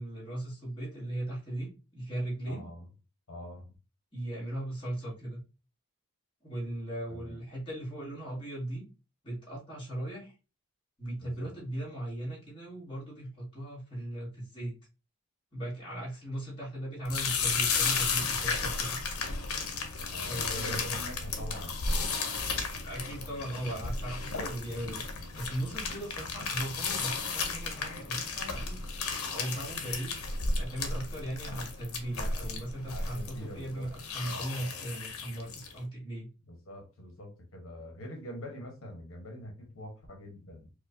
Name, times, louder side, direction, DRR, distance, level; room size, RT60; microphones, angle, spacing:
voice 1, 0.0-2.6 4.1-5.4 6.4-8.8 9.2-10.3 11.0-14.7 15.5-19.0 20.3-20.9 22.8-25.0 25.3-28.8 29.3-30.2 30.5-36.3, right 1 dB, 25° left, -5 dB, 1.7 m, -38 dB
voice 2, 2.5-2.9 3.3-3.7 7.1-7.4 11.2-11.5 20.1-22.2 32.9-33.9 34.2-34.9 36.5-40.7, equal, 65° left, 0 dB, 1.0 m, -44 dB
sound 1, 17.1-35.8, left 4 dB, 85° left, 0.8 m, -34 dB
4.7 x 2.3 x 2.6 m, 0.31 s
head